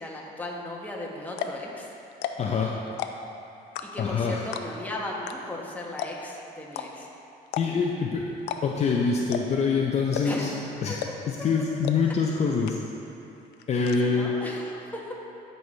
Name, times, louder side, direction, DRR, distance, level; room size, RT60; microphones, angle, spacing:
voice 1, 0.0-1.9 3.8-7.1 7.6-7.7 10.2-11.1 11.4-11.5 12.0-12.1 14.0-15.1, left 1 dB, 10° left, -3 dB, 1.3 m, -36 dB
sound 1, 0.8-0.9 1.3-1.6 2.1-2.5 2.9-3.3 3.7-4.1 4.5-4.9 5.3-5.4 5.6-5.7 6.0-6.3 6.7-6.9 7.5-7.9 8.4-8.9 9.3-9.6 10.1-10.5 11.0-11.3 11.8-11.9 12.3-12.4 12.7-13.1 13.4-14.0, left 11 dB, 85° left, 0.5 m, -33 dB
voice 2, 2.4-2.7 4.0-4.4 7.6-8.4 8.6-10.5 10.8-11.0 11.3-12.8 13.7-14.4, left 5 dB, 40° left, 0 dB, 0.6 m, -25 dB
12.5 x 5.5 x 3.2 m, 2.9 s
cardioid pair, 110°, 17 cm